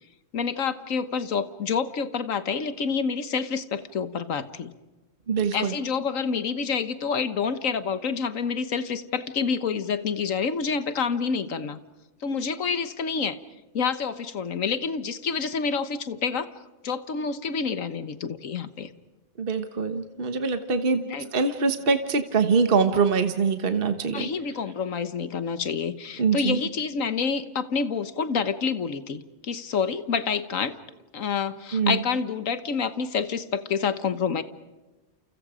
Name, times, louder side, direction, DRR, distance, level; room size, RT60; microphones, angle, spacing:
voice 1, 0.3-4.7 5.5-11.8 12.2-13.4 13.7-16.5 16.8-18.9 21.1-21.3 24.1-30.8 31.1-34.4, left 6 dB, 85° left, 12 dB, 1.6 m, -28 dB
voice 2, 5.3-5.7 19.4-21.0 21.3-24.3 26.2-26.6 31.7-32.0, right 5 dB, 45° right, 8 dB, 1.5 m, -23 dB
29.5 x 29.0 x 5.1 m, 1.1 s
omnidirectional pair, 1.3 m